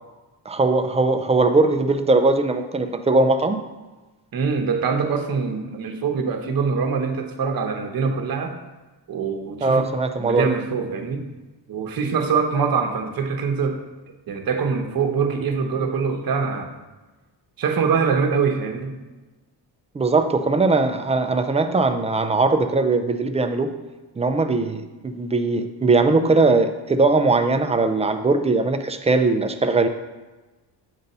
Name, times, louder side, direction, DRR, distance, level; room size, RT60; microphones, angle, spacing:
voice 1, 0.5-3.6 9.6-10.5 19.9-23.7 24.2-29.9, right 3 dB, 15° right, 7 dB, 0.3 m, -20 dB
voice 2, 4.3-8.5 9.1-9.9 10.2-11.2 11.7-13.8 14.3-16.7 17.6-18.9, right 5 dB, 55° right, 4 dB, 0.9 m, -23 dB
8.0 x 2.7 x 5.3 m, 1.2 s
cardioid pair, 105°, 43 cm